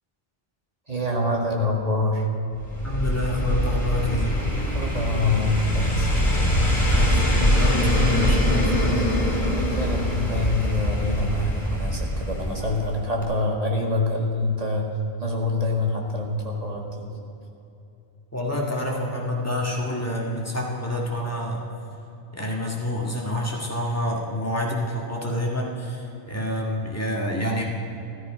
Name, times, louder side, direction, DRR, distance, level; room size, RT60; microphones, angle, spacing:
voice 1, 0.9-2.3 4.7-6.1 9.5-17.1, left 2 dB, 40° right, 0 dB, 1.9 m, -26 dB
sound 1, 2.6-13.0 13.2-13.3, equal, 50° left, 2.7 m, -23 dB
voice 2, 2.8-4.4 6.9-9.0 18.3-21.6 22.3-27.6, left 1 dB, 15° left, -3 dB, 2.0 m, -28 dB
13.5 x 13.5 x 5.1 m, 2.9 s
omnidirectional pair, 1.0 m